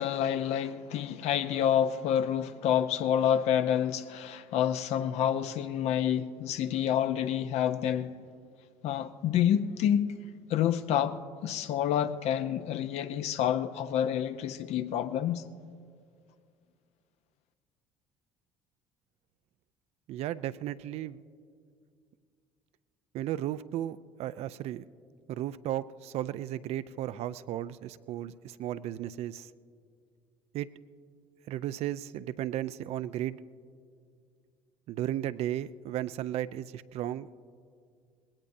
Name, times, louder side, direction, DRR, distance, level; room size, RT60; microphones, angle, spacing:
voice 1, 0.0-8.1 8.8-10.2 10.5-15.4, left 9 dB, 65° left, 0.6 m, -28 dB
voice 2, 20.1-21.2 23.1-24.8 25.3-29.5 30.5-30.7 31.5-33.4 34.9-37.4, right 12 dB, 60° right, 0.4 m, -35 dB
20.0 x 17.5 x 2.7 m
hypercardioid pair, 65°, 12 cm